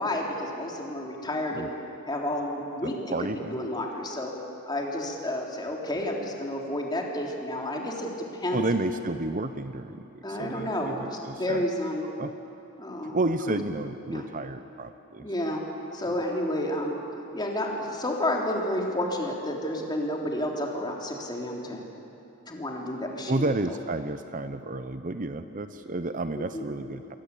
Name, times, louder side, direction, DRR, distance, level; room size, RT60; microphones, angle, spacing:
voice 1, 0.0-1.7 2.1-2.9 3.2-4.3 4.7-8.1 8.4-8.7 10.2-12.0 12.8-13.2 13.5-13.6 14.1-14.3 15.2-15.6 15.9-17.0 17.3-21.8 22.5-23.5 26.4-26.7, left 1 dB, 20° left, -1 dB, 3.7 m, -30 dB
voice 2, 3.1-3.6 8.5-11.7 12.2-12.3 13.1-15.3 23.3-27.2, right 2 dB, 40° right, 10 dB, 0.8 m, -31 dB
29.0 x 22.5 x 8.5 m, 2.9 s
head